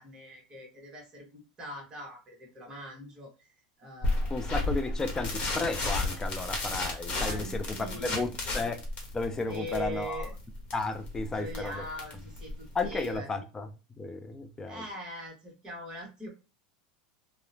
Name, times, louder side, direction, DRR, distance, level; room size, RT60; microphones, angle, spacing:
voice 1, 0.0-3.5 3.8-4.4 4.7-4.9 7.2-8.6 9.5-10.3 11.3-13.3 14.7-16.3, equal, 20° right, 1.2 m, -42 dB
sound 1, 4.0-13.2, left 2 dB, 35° left, 1.0 m, -33 dB
voice 2, 4.3-8.8 9.1-10.2 10.7-11.8 12.7-13.7 14.0-14.8, left 3 dB, 15° left, 0.4 m, -33 dB
2.8 x 2.1 x 2.5 m
supercardioid pair, 130°, 4 cm